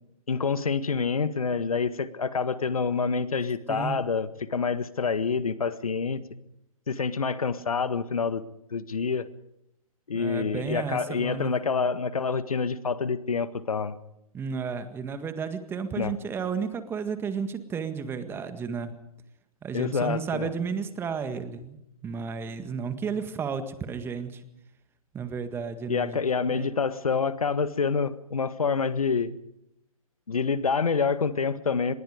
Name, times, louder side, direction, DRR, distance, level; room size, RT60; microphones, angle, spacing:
voice 1, 0.3-6.2 6.9-8.4 8.7-9.3 10.1-14.0 15.9-16.1 19.7-20.5 25.9-29.3 30.3-31.9, left 5 dB, 75° left, 13 dB, 1.7 m, -27 dB
voice 2, 3.7-4.0 10.1-11.5 14.3-18.9 19.6-24.4 25.1-26.2 26.5-26.7, right 6 dB, 10° right, 10 dB, 1.8 m, -33 dB
25.5 x 21.5 x 5.0 m, 0.83 s
figure-of-eight pair, 130°, 19 cm